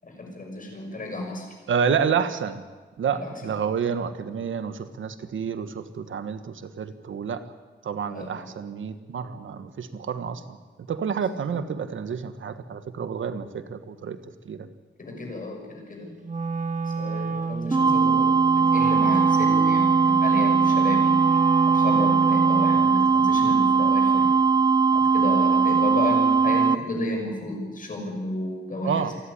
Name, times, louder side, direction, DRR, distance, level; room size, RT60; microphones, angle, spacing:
voice 1, 0.0-1.5 3.1-3.5 8.1-8.4 15.0-16.1 17.0-21.2 21.7-24.3 24.9-29.1, left 1 dB, 45° left, 2 dB, 6.5 m, -32 dB
voice 2, 1.7-2.6 3.0-7.4 7.8-10.6 10.9-14.7 28.8-29.1, right 6 dB, 85° right, 10 dB, 1.4 m, -29 dB
Wind instrument woodwind instrument, 16.2-23.0, right 4 dB, 40° right, 1.6 m, -30 dB
sound 1, 17.7-26.8, right 5 dB, 20° right, 0.6 m, -20 dB
28.0 x 11.5 x 9.9 m, 1.4 s
wide cardioid pair, 110°, 20 cm